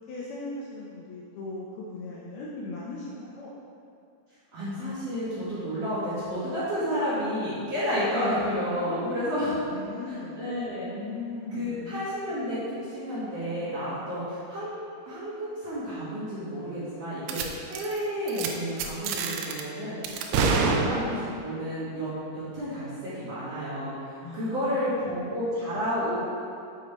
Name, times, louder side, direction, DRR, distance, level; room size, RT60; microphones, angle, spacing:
voice 1, 0.0-3.5 8.8-12.1 24.2-25.1, left 3 dB, 85° left, -5 dB, 2.2 m, -38 dB
voice 2, 4.5-9.6 10.1-10.9 11.5-14.7 15.0-20.0 20.3-22.1 22.3-26.2, equal, 50° right, -12 dB, 2.1 m, -31 dB
sound 1, 17.3-17.5 17.7-18.0 18.3-18.5 18.8-19.6 20.0-21.4, right 5 dB, 80° right, 2.6 m, -27 dB
6.9 x 6.0 x 4.3 m, 2.5 s
omnidirectional pair, 5.3 m